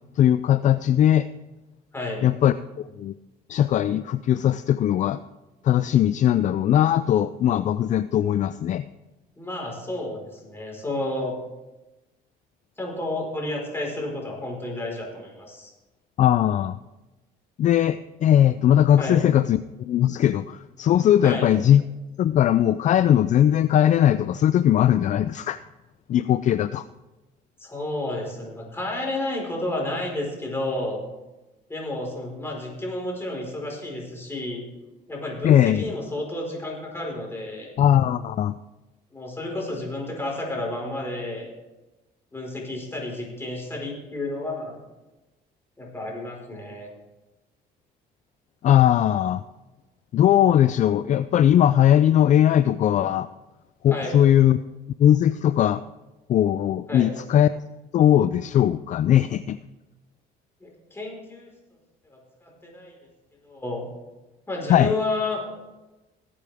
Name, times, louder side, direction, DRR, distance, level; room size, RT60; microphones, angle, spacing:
voice 1, 0.2-1.3 2.2-2.6 3.0-3.1 3.5-5.2 5.6-8.8 16.2-16.8 17.6-21.8 22.2-25.6 26.1-26.8 35.4-35.8 37.8-38.6 48.6-49.4 50.1-53.3 53.8-54.6 55.0-55.8 56.3-57.5 57.9-59.6 64.7-64.9, left 11 dB, 45° left, 13 dB, 0.4 m, -19 dB
voice 2, 1.9-2.2 9.4-11.4 12.8-15.7 19.0-19.2 21.2-21.5 27.6-31.0 31.7-34.6 35.1-37.7 39.1-41.5 42.3-44.8 45.8-46.9 53.9-54.2 56.9-57.1 60.6-61.5 62.1-62.9 63.4-63.9 64.5-65.5, left 2 dB, 15° left, -1 dB, 4.6 m, -31 dB
19.0 x 8.6 x 3.5 m, 1.1 s
cardioid pair, 110°, 17 cm